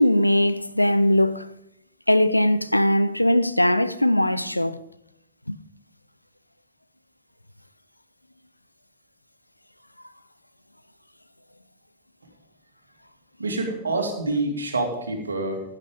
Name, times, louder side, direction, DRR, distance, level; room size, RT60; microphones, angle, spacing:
voice 1, 0.0-1.5 2.1-4.8 5.5-5.6, left 1 dB, 85° left, 0.5 m, -20 dB
voice 2, 13.4-15.6, right 2 dB, 75° right, 2.6 m, -26 dB
15.5 x 9.1 x 5.2 m
figure-of-eight pair, 90°, 0 cm